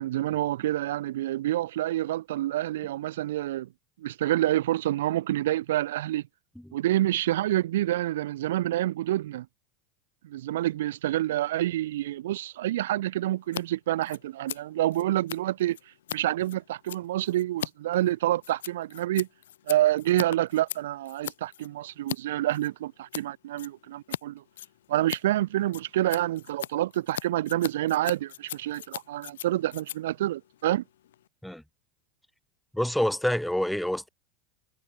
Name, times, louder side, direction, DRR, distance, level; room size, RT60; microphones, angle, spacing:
voice 1, 0.0-3.7 4.0-6.2 6.7-9.4 10.2-15.8 16.1-19.3 19.7-24.4 24.9-30.8, right 14 dB, 80° right, 1.7 m, -27 dB
Scissors, 13.4-13.6 13.9-22.2 22.5-23.2 23.6-24.2 24.5-31.3, left 12 dB, 85° left, 3.0 m, -39 dB
voice 2, 32.7-34.1, left 1 dB, ahead, 3.6 m, -27 dB
hypercardioid pair, 105°, 0 cm